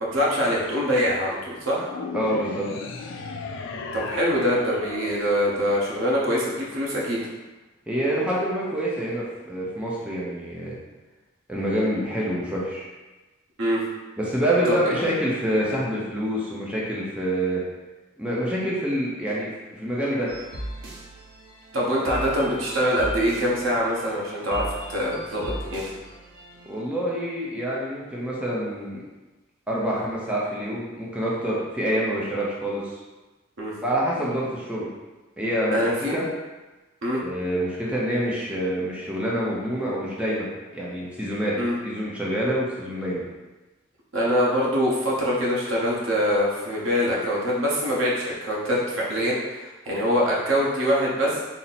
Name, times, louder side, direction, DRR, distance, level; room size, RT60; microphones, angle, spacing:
voice 1, 0.0-1.9 3.9-7.3 13.6-13.8 14.6-14.8 21.7-25.8 31.9-32.0 33.6-33.7 35.7-36.2 37.0-37.2 41.6-41.7 44.1-51.4, equal, 85° right, -5 dB, 1.0 m, -24 dB
sound 1, 1.9-6.4, left 4 dB, 65° left, 0.3 m, -35 dB
voice 2, 2.1-2.7 7.9-10.8 11.5-12.9 14.2-17.6 18.2-20.3 26.7-29.0 29.7-32.8 33.8-34.9 35.4-36.3 37.2-40.5 40.7-41.6 41.8-43.2, equal, 5° right, -6 dB, 0.6 m, -26 dB
sound 2, 20.3-26.8, right 1 dB, 55° right, 0.9 m, -38 dB
4.1 x 2.1 x 4.1 m, 1.2 s
head